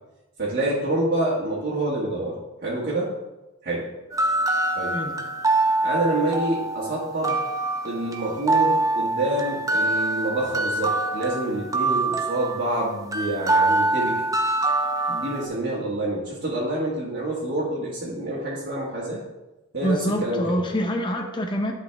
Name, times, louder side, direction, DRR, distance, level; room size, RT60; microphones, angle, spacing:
voice 1, 0.4-3.1 3.6-3.9 4.7-5.0 5.8-7.4 7.8-14.2 15.1-19.2 19.7-20.5, right 1 dB, 50° right, -7 dB, 1.6 m, -27 dB
sound 1, 4.1-15.5, right 2 dB, 15° right, 0.6 m, -24 dB
voice 2, 19.8-21.7, equal, 25° left, 3 dB, 0.7 m, -25 dB
11.0 x 4.2 x 3.4 m, 1.0 s
head